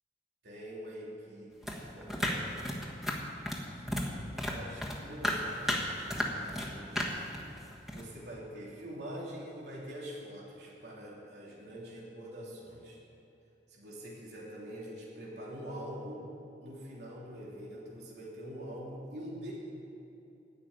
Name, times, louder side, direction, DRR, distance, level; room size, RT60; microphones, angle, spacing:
voice 1, 0.4-2.8 3.7-4.1 4.5-7.1 7.9-13.0 13.7-16.2 16.6-19.5, equal, 75° right, -5 dB, 3.1 m, -45 dB
sound 1, 1.6-4.1 4.4-6.7 7.0-8.0, left 1 dB, ahead, 1.4 m, -33 dB
17.0 x 6.2 x 9.5 m, 2.8 s
head